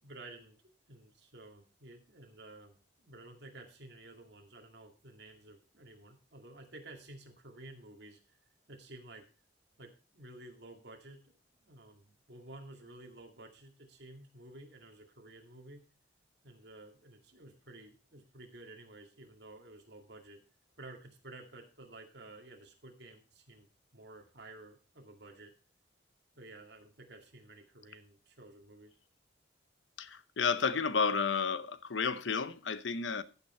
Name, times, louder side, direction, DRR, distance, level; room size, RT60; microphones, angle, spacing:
voice 1, 0.0-8.4 8.7-9.2 9.8-15.8 16.4-20.4 20.8-23.7 23.9-25.5 26.4-29.0, right 2 dB, 60° right, 2.3 m, -53 dB
voice 2, 30.0-33.2, left 5 dB, 80° left, 0.8 m, -31 dB
15.0 x 6.0 x 4.4 m
head